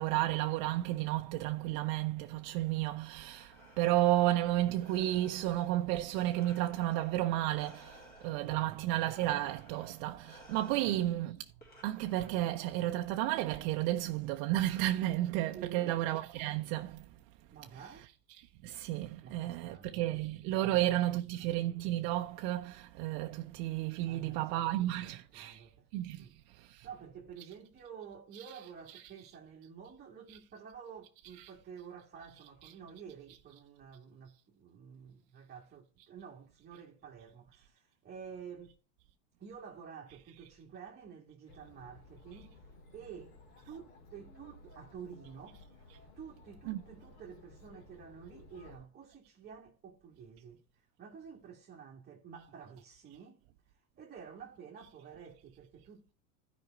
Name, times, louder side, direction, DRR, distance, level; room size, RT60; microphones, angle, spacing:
voice 1, 0.0-11.4 11.8-17.0 18.6-25.6 25.9-26.2 26.6-26.9 46.7-46.8, right 15 dB, 40° right, 0.6 m, -32 dB
Breathing, 3.1-12.8, equal, 20° left, 2.7 m, -58 dB
voice 2, 8.4-9.0 10.8-11.2 15.5-16.0 17.5-18.1 19.2-20.3 20.6-21.6 24.1-24.5 24.8-25.9 26.2-38.7 39.4-43.3 43.6-45.9 46.2-56.1, right 7 dB, 20° right, 1.6 m, -50 dB
Chatter, 41.5-48.8, left 2 dB, 70° left, 3.2 m, -57 dB
13.0 x 5.1 x 4.4 m
supercardioid pair, 140°, 48 cm